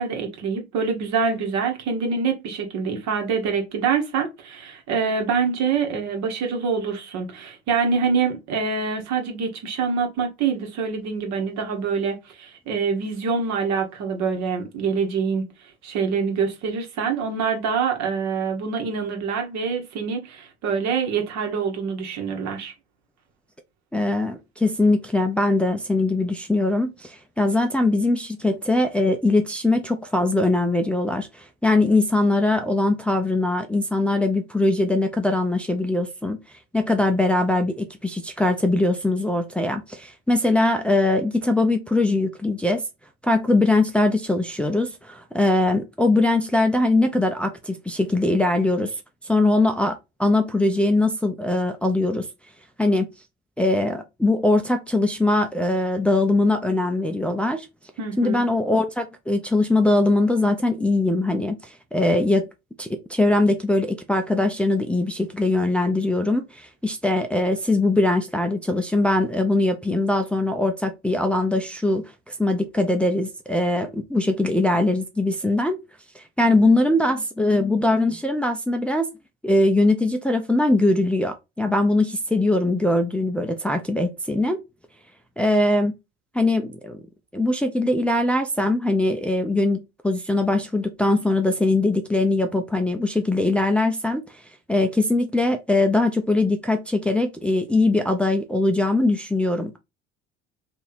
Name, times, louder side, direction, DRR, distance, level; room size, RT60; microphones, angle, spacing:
voice 1, 0.0-15.4 15.8-22.7 58.0-58.4, right 5 dB, 55° right, 1.4 m, -25 dB
voice 2, 23.9-36.4 36.7-42.8 43.2-49.0 49.2-52.3 52.8-53.1 53.6-57.7 58.2-62.5 62.8-75.8 76.1-79.1 79.4-84.6 85.4-85.9 86.3-87.0 87.3-94.2 94.7-99.8, left 2 dB, 5° left, 0.6 m, -21 dB
3.0 x 2.7 x 4.0 m
figure-of-eight pair, 60°, 32 cm